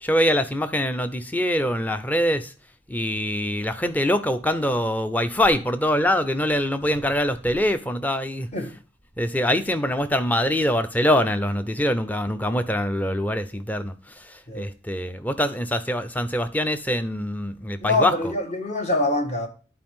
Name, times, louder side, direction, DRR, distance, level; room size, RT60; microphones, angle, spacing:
voice 1, 0.0-2.5 2.9-8.5 9.2-13.9 14.5-18.3, equal, 10° left, 0.6 m, -24 dB
voice 2, 17.8-19.5, left 2 dB, 40° left, 1.5 m, -24 dB
10.5 x 4.5 x 3.6 m
head